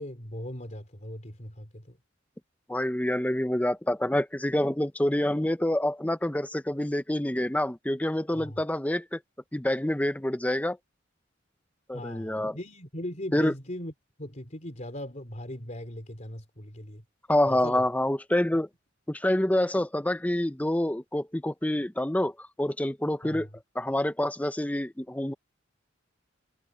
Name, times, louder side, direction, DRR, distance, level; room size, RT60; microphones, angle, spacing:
voice 1, 0.0-2.0 8.3-8.6 11.9-13.9 14.2-17.0 17.5-17.8 23.2-23.5, left 1 dB, 40° left, 3.6 m, -39 dB
voice 2, 2.7-9.2 9.5-10.8 11.9-12.6 13.3-13.5 17.3-18.7 19.1-22.3 22.6-23.5 23.7-25.3, left 1 dB, 10° left, 0.7 m, -27 dB
head